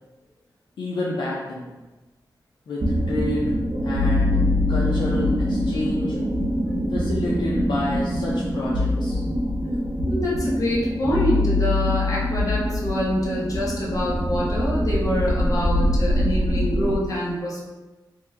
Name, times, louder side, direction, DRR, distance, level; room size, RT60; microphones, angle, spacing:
voice 1, 0.8-1.7 2.7-3.6 3.8-4.4 4.7-6.2 6.9-9.2, left 1 dB, 80° left, -5 dB, 0.4 m, -29 dB
sound 1, 2.8-17.0, left 1 dB, 80° right, 0.7 m, -23 dB
voice 2, 10.1-17.6, equal, 45° left, -5 dB, 0.8 m, -25 dB
2.8 x 2.1 x 3.4 m, 1.2 s
wide cardioid pair, 125°, 8 cm